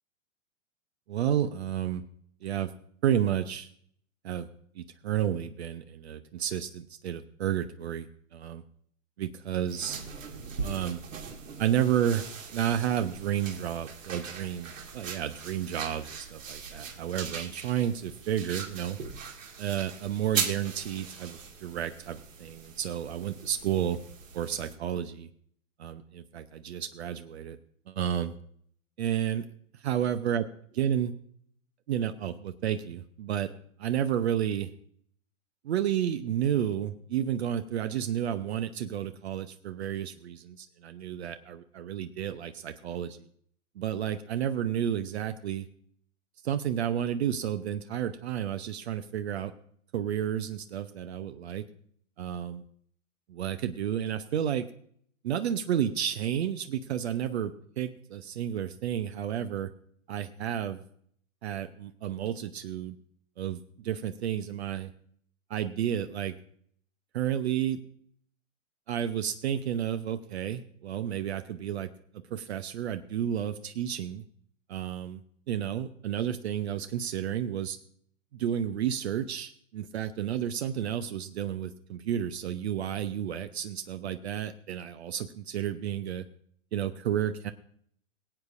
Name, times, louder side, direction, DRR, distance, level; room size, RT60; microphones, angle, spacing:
voice 1, 1.1-2.0 2.4-2.7 3.0-3.7 4.2-4.5 4.7-8.1 8.3-8.6 9.2-10.0 10.6-11.0 11.6-12.3 12.5-19.0 19.6-24.0 24.3-25.3 25.8-27.6 27.9-28.3 29.0-29.4 29.8-30.4 30.7-31.1 31.9-33.5 33.8-34.7 35.6-43.2 43.8-45.7 46.4-49.5 49.9-51.6 52.2-52.6 53.3-54.7 55.2-59.7 60.1-60.8 61.4-63.0 63.4-64.9 65.5-66.3 67.1-67.8 68.9-71.9 72.3-74.2 74.7-75.2 75.5-77.8 78.3-86.2 86.7-87.5, right 10 dB, 55° right, 10 dB, 0.8 m, -31 dB
sound 1, 9.7-24.7, right 6 dB, 70° right, 2.3 m, -40 dB
23.0 x 8.0 x 2.6 m, 0.63 s
figure-of-eight pair, 115°, 39 cm